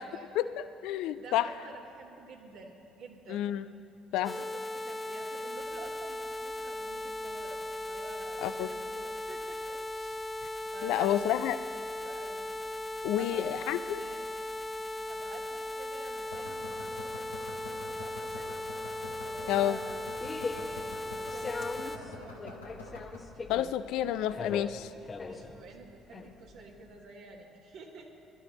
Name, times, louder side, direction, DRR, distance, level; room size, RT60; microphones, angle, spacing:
voice 1, 0.4-1.5 3.3-3.6 4.1-4.3 8.4-8.7 10.8-11.6 13.0-14.0 19.5-19.8 23.5-24.9, left 12 dB, 60° left, 13 dB, 0.4 m, -29 dB
voice 2, 1.1-3.4 4.1-10.2 10.7-11.4 12.0-12.4 13.2-14.3 15.0-18.6 19.2-22.6 25.2-28.1, right 4 dB, 60° right, -1 dB, 1.4 m, -50 dB
sound 1, 4.2-22.0, left 1 dB, 15° left, 0.7 m, -38 dB
sound 2, 5.5-23.2, left 2 dB, 85° left, 1.4 m, -50 dB
sound 3, 19.3-27.0, left 4 dB, 30° left, 1.0 m, -41 dB
22.0 x 12.5 x 3.0 m, 2.9 s
figure-of-eight pair, 50°, 0 cm